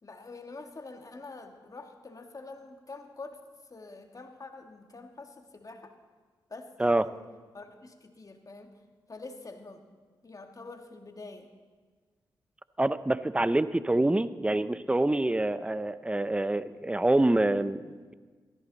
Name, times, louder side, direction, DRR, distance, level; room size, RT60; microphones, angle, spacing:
voice 1, 0.0-3.4 3.7-5.9 6.5-7.2 7.5-8.7 9.1-9.8 10.2-11.5, left 3 dB, 40° left, 5 dB, 1.9 m, -46 dB
voice 2, 12.8-18.1, right 1 dB, 15° right, 15 dB, 0.6 m, -26 dB
16.5 x 14.0 x 4.1 m, 1.4 s
supercardioid pair, 45°, 9 cm